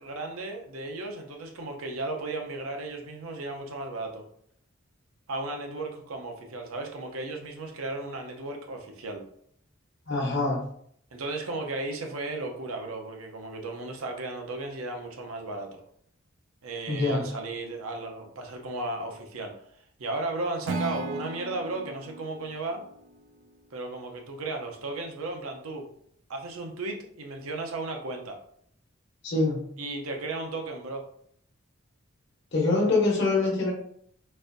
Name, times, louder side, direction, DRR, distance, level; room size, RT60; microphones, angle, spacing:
voice 1, 0.0-4.2 5.3-9.2 11.1-15.8 16.6-19.5 20.0-22.8 23.7-25.9 26.3-28.4 29.8-31.0, right 2 dB, 85° right, 3 dB, 0.7 m, -35 dB
voice 2, 10.1-10.6 16.9-17.2 29.2-29.6 32.5-33.7, left 3 dB, 55° left, -2 dB, 1.0 m, -24 dB
Acoustic guitar / Strum, 20.6-23.8, right 3 dB, 55° right, 0.3 m, -37 dB
4.1 x 2.5 x 2.5 m, 0.66 s
head